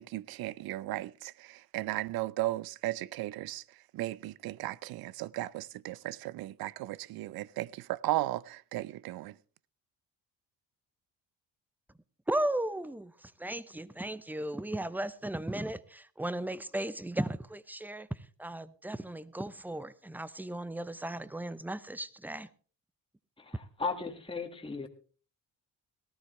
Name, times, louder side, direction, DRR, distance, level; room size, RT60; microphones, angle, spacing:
voice 1, 0.0-3.6 3.9-9.4, right 16 dB, 75° right, 0.6 m, -36 dB
voice 2, 12.3-18.1 18.4-22.5, right 1 dB, 5° right, 0.7 m, -36 dB
voice 3, 23.4-24.9, left 4 dB, 15° left, 1.8 m, -36 dB
18.5 x 13.5 x 3.2 m
cardioid pair, 95°, 36 cm